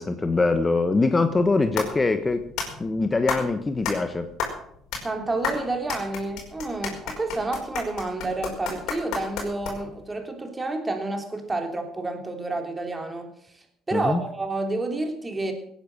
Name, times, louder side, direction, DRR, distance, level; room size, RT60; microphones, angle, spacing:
voice 1, 0.0-2.5 2.8-4.3 13.9-14.2, left 3 dB, 25° left, 9 dB, 1.2 m, -23 dB
sound 1, 1.3-10.1, left 5 dB, 70° left, 5.2 m, -33 dB
voice 2, 5.0-13.3 13.9-15.5, right 2 dB, 20° right, 4 dB, 3.5 m, -29 dB
17.5 x 10.0 x 6.4 m, 0.70 s
supercardioid pair, 75°, 0 cm